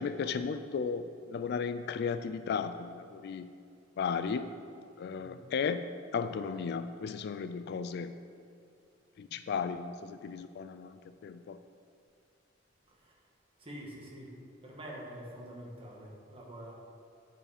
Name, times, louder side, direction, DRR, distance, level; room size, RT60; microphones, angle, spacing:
voice 1, 0.0-3.5 4.0-4.5 5.0-5.9 6.1-8.2 9.2-11.6, left 6 dB, 60° left, 11 dB, 0.3 m, -35 dB
voice 2, 13.6-14.3 14.6-16.7, right 1 dB, 30° right, -2 dB, 1.4 m, -46 dB
8.3 x 4.8 x 5.0 m, 2.5 s
head